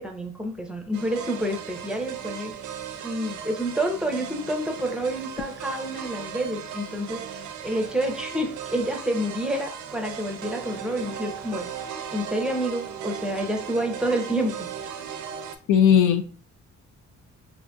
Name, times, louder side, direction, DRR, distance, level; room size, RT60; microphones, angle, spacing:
voice 1, 0.0-2.6 3.0-7.2 7.6-11.7 12.1-14.7, right 1 dB, 5° right, 0.5 m, -28 dB
sound 1, 0.9-15.6, right 8 dB, 75° right, 0.5 m, -37 dB
voice 2, 15.7-16.2, left 9 dB, 85° left, 0.5 m, -17 dB
2.9 x 2.5 x 2.2 m
cardioid pair, 90°, 30 cm